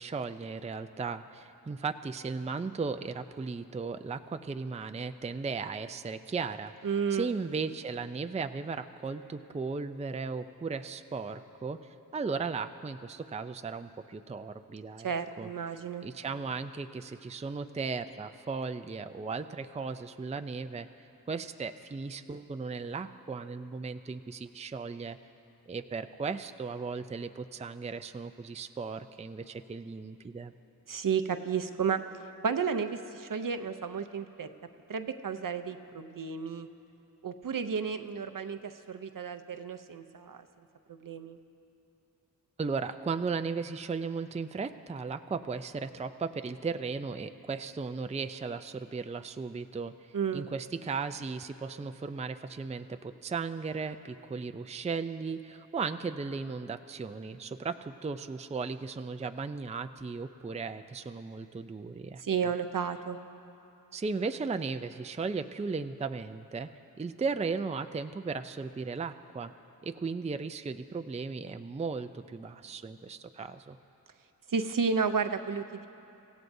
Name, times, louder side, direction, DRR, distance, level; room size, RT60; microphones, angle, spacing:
voice 1, 0.0-6.7 7.1-11.8 12.1-15.1 15.4-15.5 16.0-20.9 21.3-25.2 25.7-30.5 42.6-49.9 50.3-62.2 63.9-66.7 67.0-69.5 69.8-73.8, right 4 dB, 20° right, 9 dB, 0.4 m, -36 dB
voice 2, 6.8-7.3 15.0-16.1 30.9-32.0 32.4-34.5 34.9-36.7 37.2-40.5 40.9-41.4 50.1-50.5 62.2-63.2 74.5-75.9, right 6 dB, 60° right, 9 dB, 0.7 m, -32 dB
26.0 x 16.0 x 2.7 m, 2.8 s
wide cardioid pair, 60°, 37 cm